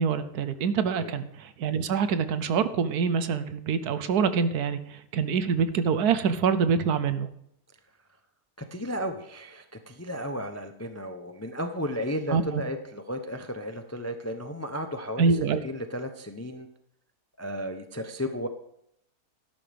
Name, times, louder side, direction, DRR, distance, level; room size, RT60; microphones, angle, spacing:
voice 1, 0.0-4.8 5.1-7.3 12.3-12.6 15.2-15.6, right 6 dB, 75° right, 12 dB, 1.3 m, -25 dB
voice 2, 8.6-16.7 17.4-18.5, equal, 20° left, 7 dB, 0.3 m, -34 dB
12.5 x 11.5 x 3.5 m, 0.73 s
omnidirectional pair, 1.7 m